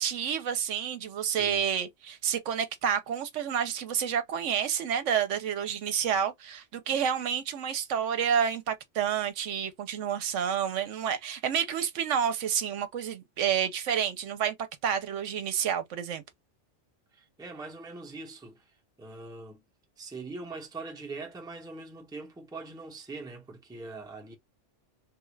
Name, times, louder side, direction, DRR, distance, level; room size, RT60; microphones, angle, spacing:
voice 1, 0.0-14.5 14.8-16.2, right 8 dB, 75° right, 0.9 m, -29 dB
voice 2, 1.2-1.6 17.1-19.6 20.0-24.4, right 3 dB, 5° right, 0.6 m, -42 dB
3.3 x 2.4 x 3.1 m
omnidirectional pair, 1.3 m